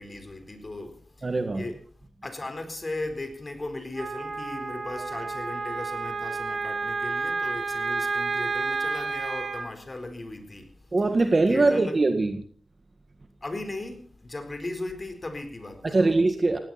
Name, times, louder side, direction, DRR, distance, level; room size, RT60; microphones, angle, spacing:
voice 1, 0.0-1.8 2.2-10.9 11.5-12.0 13.4-16.2, left 2 dB, 30° left, 4.2 m, -37 dB
voice 2, 1.2-1.6 10.9-12.4 15.9-16.6, right 3 dB, 35° right, 1.8 m, -22 dB
Wind instrument woodwind instrument, 4.0-9.7, right 4 dB, 55° right, 2.7 m, -30 dB
19.0 x 16.5 x 4.3 m
wide cardioid pair, 90°, 0 cm